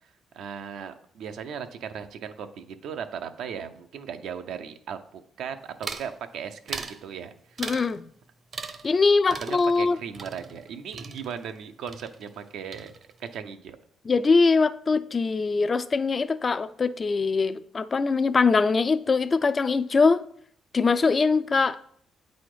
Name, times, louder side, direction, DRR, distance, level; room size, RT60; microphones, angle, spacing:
voice 1, 0.3-7.6 9.4-12.9 13.2-13.8, right 7 dB, 80° right, 8 dB, 0.6 m, -37 dB
sound 1, 5.8-6.1 6.7-7.0 7.6-8.0 8.5-9.0 9.3-11.6 11.9-12.5 12.7-13.3, right 4 dB, 45° right, 0.7 m, -39 dB
voice 2, 7.6-8.1 8.8-10.0 14.1-20.2 20.7-22.0, left 4 dB, 35° left, 13 dB, 0.3 m, -22 dB
8.3 x 4.1 x 4.9 m, 0.63 s
cardioid pair, 90°, 0 cm